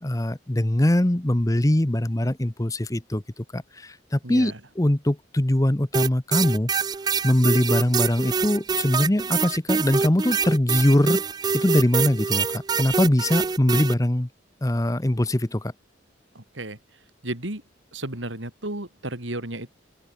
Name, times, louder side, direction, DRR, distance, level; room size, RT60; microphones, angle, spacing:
voice 1, 0.0-6.7 7.2-11.2 11.5-14.3 14.6-15.7, left 1 dB, 20° left, 0.8 m, -22 dB
voice 2, 4.2-4.6 16.3-17.6 17.9-19.7, right 1 dB, 85° right, 4.7 m, -34 dB
sound 1, 5.9-13.9, right 5 dB, 20° right, 0.3 m, -25 dB
open air
head